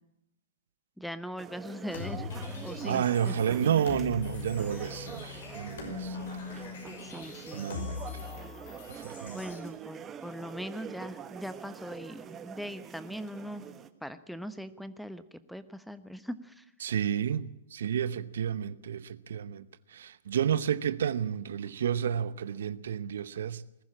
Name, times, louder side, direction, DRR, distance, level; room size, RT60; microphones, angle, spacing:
voice 1, 1.0-2.3 2.6-3.4 7.0-7.8 9.3-13.6 14.0-16.7, equal, ahead, 1.1 m, -40 dB
sound 1, 1.4-13.9, right 8 dB, 25° right, 1.3 m, -45 dB
sound 2, 1.9-9.6, left 6 dB, 70° left, 5.6 m, -41 dB
voice 2, 2.8-6.4 7.5-8.0 8.9-9.4 16.8-19.6 19.9-23.6, right 8 dB, 70° right, 0.9 m, -31 dB
20.5 x 14.5 x 8.7 m
hypercardioid pair, 115°, 0 cm